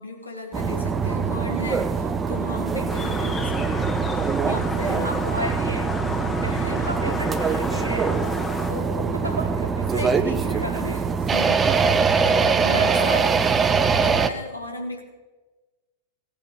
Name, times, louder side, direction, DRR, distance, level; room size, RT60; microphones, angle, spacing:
voice 1, 0.0-5.1 6.3-6.9 8.7-9.4 9.9-11.0 11.3-13.2 14.0-15.0, left 2 dB, 80° left, 1 dB, 1.6 m, -36 dB
sound 1, 0.5-14.3, right 5 dB, 20° right, 0.7 m, -23 dB
sound 2, 2.9-8.7, left 2 dB, 15° left, 1.4 m, -32 dB
voice 2, 5.0-5.9 6.4-8.4 9.2-10.0 10.6-11.2 12.7-13.5, right 1 dB, 85° right, 2 dB, 1.9 m, -33 dB
16.0 x 7.8 x 5.5 m, 1.2 s
figure-of-eight pair, 90°, 0 cm